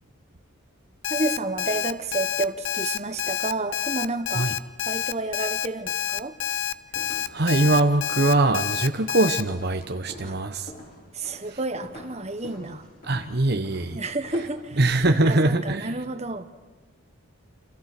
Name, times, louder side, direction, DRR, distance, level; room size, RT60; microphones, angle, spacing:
Alarm, 1.0-9.4, left 9 dB, 60° left, 0.9 m, -28 dB
voice 1, 1.1-4.5 4.9-6.4 10.2-10.4 11.1-12.8 13.9-14.8 15.1-16.5, right 2 dB, 30° right, 9 dB, 1.4 m, -30 dB
sound 1, 6.9-14.9, left 1 dB, 40° left, 7.1 m, -46 dB
voice 2, 7.3-10.7 11.5-11.6 13.0-14.0 14.8-15.9, right 2 dB, 50° right, 6 dB, 1.0 m, -22 dB
30.0 x 28.0 x 6.1 m, 1.3 s
head